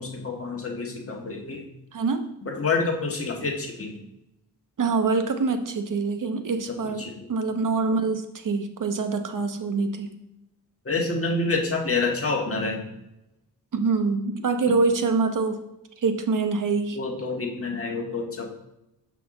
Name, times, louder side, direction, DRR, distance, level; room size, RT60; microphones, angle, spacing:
voice 1, 0.0-1.6 2.5-4.0 6.7-7.3 10.8-12.8 16.9-18.5, left 3 dB, 35° left, 0 dB, 1.5 m, -28 dB
voice 2, 1.9-2.3 4.8-10.1 13.7-15.6 16.0-17.0, right 4 dB, 50° right, 7 dB, 0.9 m, -25 dB
6.2 x 5.8 x 3.9 m, 0.87 s
cardioid pair, 80°, 40 cm